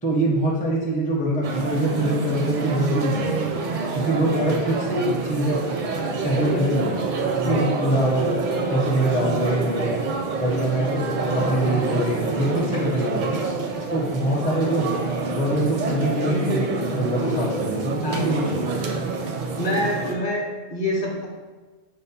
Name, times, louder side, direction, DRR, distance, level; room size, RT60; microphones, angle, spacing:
voice 1, 0.0-3.5 3.9-5.7 6.2-7.1 7.4-8.3 8.7-10.0 10.4-11.1 11.3-13.4 13.9-14.9 15.3-18.7, right 1 dB, 10° left, -3 dB, 0.5 m, -24 dB
sound 1, 1.4-20.1, right 3 dB, 60° right, 0.5 m, -27 dB
voice 2, 18.0-18.4 19.6-21.3, left 1 dB, 50° left, -2 dB, 0.9 m, -26 dB
5.3 x 2.1 x 4.1 m, 1.3 s
omnidirectional pair, 1.1 m